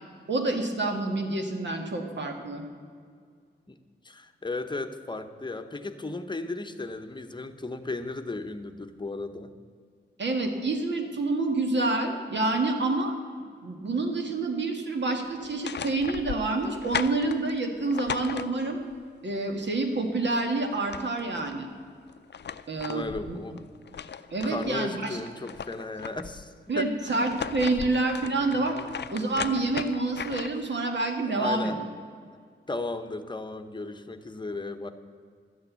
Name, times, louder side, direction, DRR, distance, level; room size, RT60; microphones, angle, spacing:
voice 1, 0.3-2.6 10.2-13.1 13.6-18.8 19.2-21.7 22.7-23.4 24.3-25.2 26.7-28.8 29.1-31.8, right 2 dB, 70° right, 4 dB, 1.8 m, -28 dB
voice 2, 4.0-9.5 22.9-23.7 24.4-27.2 27.8-28.0 28.7-28.9 30.7-30.8 31.2-31.8 32.7-34.9, left 2 dB, 25° left, 7 dB, 0.9 m, -35 dB
sound 1, 15.4-18.9 20.4-20.5 20.7-21.6 22.1-24.7 25.1-26.5 27.1-30.7, left 7 dB, 65° left, 0.5 m, -37 dB
13.0 x 8.8 x 8.1 m, 2.1 s
wide cardioid pair, 115°, 19 cm